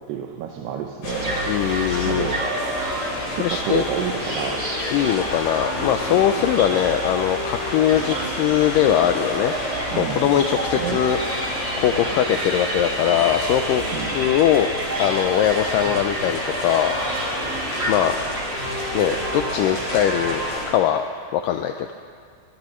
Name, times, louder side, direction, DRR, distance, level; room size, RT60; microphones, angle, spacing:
voice 1, 0.1-1.6 2.0-2.4 2.9-4.7 9.9-11.0 13.9-14.2, right 9 dB, 90° right, 2 dB, 2.9 m, -30 dB
sound 1, 1.0-20.7, left 1 dB, 65° left, 6.3 m, -30 dB
sound 2, 1.0-20.5, right 1 dB, 55° right, 0.7 m, -31 dB
voice 2, 1.5-2.3 3.3-3.8 4.9-9.5 10.0-13.8 14.1-14.7 15.0-17.5 17.9-18.2 18.9-20.4 20.7-21.0 21.3-21.9, left 10 dB, 85° left, 6 dB, 1.9 m, -21 dB
22.0 x 19.0 x 3.1 m, 2.2 s
omnidirectional pair, 4.5 m